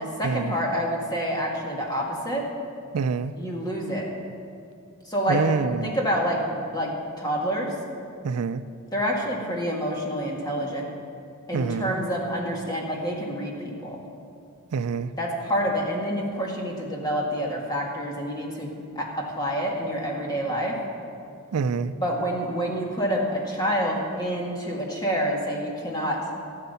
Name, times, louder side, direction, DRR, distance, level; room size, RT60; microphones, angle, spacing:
voice 1, 0.0-2.4 3.4-4.0 5.0-7.7 8.9-10.8 11.5-14.0 15.2-20.8 22.0-26.2, equal, 20° left, -2 dB, 2.1 m, -27 dB
voice 2, 2.9-3.3 5.3-5.9 8.2-8.6 11.5-11.9 14.7-15.1 21.5-21.9, right 5 dB, 85° right, 12 dB, 0.4 m, -26 dB
13.0 x 12.0 x 5.7 m, 2.5 s
head